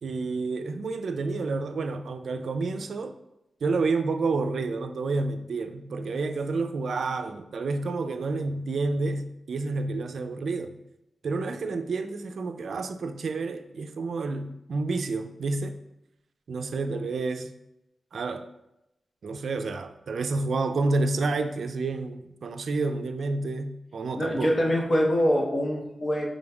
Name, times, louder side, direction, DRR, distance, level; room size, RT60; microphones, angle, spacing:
voice 1, 0.0-3.2 3.6-10.8 11.2-15.8 16.5-17.5 18.1-18.5 19.2-24.7, right 3 dB, 70° right, 0.3 m, -29 dB
voice 2, 24.1-26.3, equal, 45° left, 1.0 m, -24 dB
5.1 x 3.8 x 2.3 m
cardioid pair, 55°, 0 cm